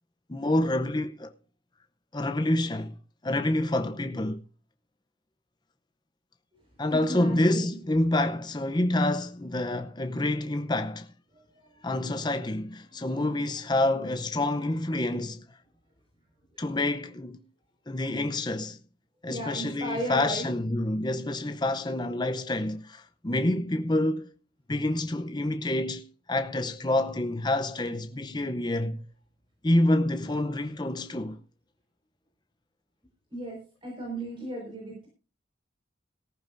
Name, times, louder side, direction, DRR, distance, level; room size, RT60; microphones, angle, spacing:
voice 1, 0.3-1.3 2.1-3.0 3.2-4.4 6.8-11.1 11.8-15.4 16.6-17.4 17.9-18.8 19.2-24.3 24.7-29.0 29.6-31.4, left 1 dB, 20° left, 0.7 m, -27 dB
voice 2, 6.9-7.7 11.3-11.9 13.0-13.2 19.3-20.4 33.3-35.1, right 1 dB, 25° right, 5.0 m, -36 dB
18.5 x 14.5 x 2.6 m
head